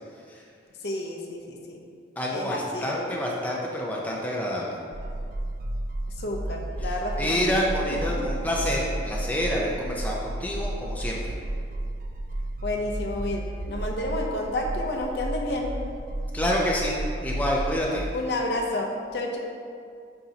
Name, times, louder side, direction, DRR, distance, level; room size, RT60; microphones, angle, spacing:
voice 1, 0.8-1.8 2.3-3.2 6.2-7.5 7.9-8.3 12.6-15.7 18.1-19.4, left 1 dB, 60° left, 1 dB, 0.7 m, -30 dB
voice 2, 2.2-4.8 6.8-11.2 16.3-17.0 17.2-18.0, equal, 10° left, -3 dB, 0.6 m, -28 dB
sound 1, 4.9-18.0, right 1 dB, 45° right, 0.3 m, -32 dB
9.1 x 4.5 x 2.8 m, 2.3 s
head